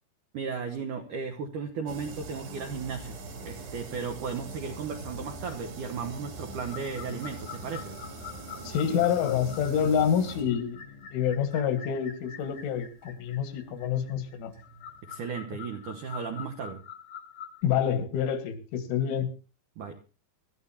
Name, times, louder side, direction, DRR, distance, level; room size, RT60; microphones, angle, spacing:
voice 1, 0.3-8.0 15.1-16.8 19.8-20.0, right 5 dB, 80° right, 5 dB, 1.8 m, -35 dB
sound 1, 1.9-15.3, right 2 dB, 60° right, 5.1 m, -43 dB
sound 2, 6.5-17.6, left 8 dB, 55° left, 1.5 m, -46 dB
voice 2, 8.6-14.5 17.6-19.3, left 8 dB, 85° left, 8 dB, 4.1 m, -27 dB
24.5 x 13.0 x 2.8 m, 0.33 s
omnidirectional pair, 5.3 m